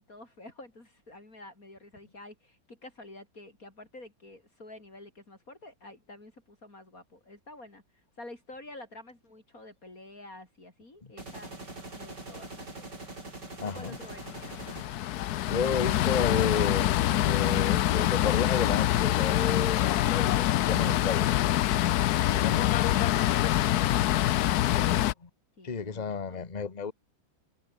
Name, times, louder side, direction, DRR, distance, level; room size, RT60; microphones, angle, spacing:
voice 1, 0.0-7.8 8.2-11.5 12.0-12.9 13.6-14.9 25.6-26.4, left 2 dB, 45° left, 5.3 m, -49 dB
sound 1, 11.2-15.2, right 2 dB, 60° right, 7.3 m, -43 dB
voice 2, 13.6-14.0 15.5-21.3 22.3-22.7 25.2-25.3 25.6-26.9, left 5 dB, 25° left, 1.4 m, -32 dB
sound 2, 14.2-25.1, left 14 dB, 70° left, 1.0 m, -25 dB
omnidirectional pair, 2.1 m